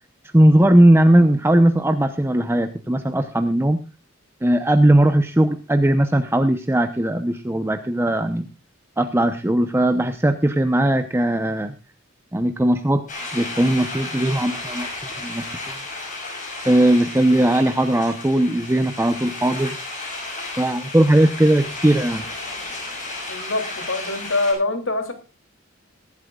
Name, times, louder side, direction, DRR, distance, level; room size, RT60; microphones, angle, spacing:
voice 1, 0.3-3.8 4.4-8.5 9.0-11.7 12.3-13.0 13.3-15.8 16.6-19.8 20.6-22.2, right 1 dB, 10° right, 7 dB, 0.8 m, -18 dB
sound 1, 13.1-24.5, left 2 dB, 40° left, 6.1 m, -33 dB
voice 2, 23.3-25.1, left 2 dB, 70° left, 6 dB, 3.0 m, -24 dB
22.5 x 12.0 x 2.4 m, 0.29 s
head